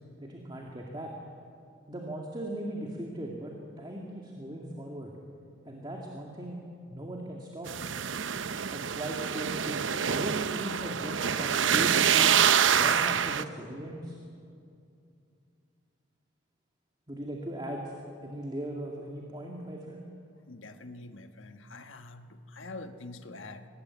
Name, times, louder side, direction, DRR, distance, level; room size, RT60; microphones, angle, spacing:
voice 1, 0.2-1.1 1.9-5.1 5.6-6.6 6.9-7.7 8.7-12.3 12.7-14.2 17.1-18.0 18.2-20.0, right 1 dB, 25° right, -1 dB, 2.2 m, -38 dB
sound 1, 7.7-13.4, right 8 dB, 75° right, 0.8 m, -26 dB
voice 2, 20.5-23.7, left 2 dB, 85° left, 7 dB, 1.4 m, -45 dB
24.0 x 19.5 x 9.6 m, 2.5 s
head